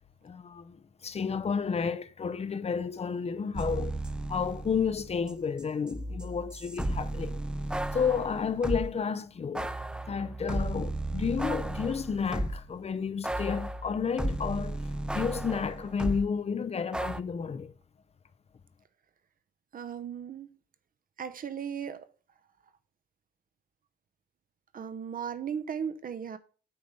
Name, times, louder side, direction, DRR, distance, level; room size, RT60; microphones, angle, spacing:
voice 1, 0.2-4.0 4.3-7.4 7.9-9.8 10.1-14.8 15.1-17.7, left 6 dB, 30° left, 0.6 m, -31 dB
sound 1, 3.5-5.3 5.6-8.9 9.5-12.7 13.2-16.3 16.9-17.2, right 1 dB, 5° right, 0.3 m, -34 dB
voice 2, 19.7-20.5 21.2-22.1 24.7-26.4, right 7 dB, 45° right, 0.8 m, -36 dB
8.6 x 3.3 x 5.6 m
cardioid pair, 90°, 20 cm